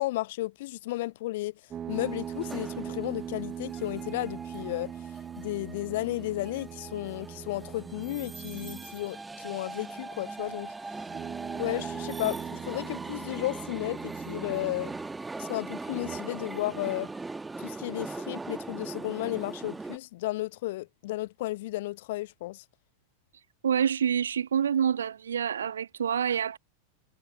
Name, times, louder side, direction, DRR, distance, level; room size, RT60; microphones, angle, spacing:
voice 1, 0.0-1.5 1.9-4.9 5.4-10.7 11.6-12.4 12.6-14.9 15.4-17.1 17.6-22.6, left 18 dB, 50° left, 0.9 m, -33 dB
sound 1, 1.7-9.0 11.0-15.2 15.9-16.2, right 9 dB, 25° right, 1.0 m, -41 dB
sound 2, 1.9-20.0, right 3 dB, 10° right, 1.3 m, -41 dB
voice 2, 23.6-26.6, right 8 dB, 65° right, 1.5 m, -27 dB
figure-of-eight pair, 90°, 0 cm